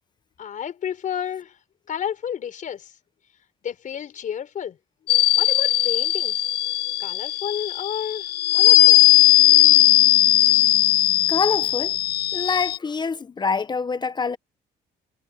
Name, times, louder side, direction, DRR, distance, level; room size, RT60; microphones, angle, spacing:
voice 1, 0.4-1.6 1.9-2.9 3.6-4.8 5.4-6.3 7.0-9.1, left 9 dB, 50° left, 4.7 m, -31 dB
sound 1, 5.1-12.8, left 15 dB, 70° left, 1.3 m, -18 dB
voice 2, 11.3-12.0 12.3-14.4, left 5 dB, 25° left, 0.8 m, -25 dB
cardioid pair, 110°, 17 cm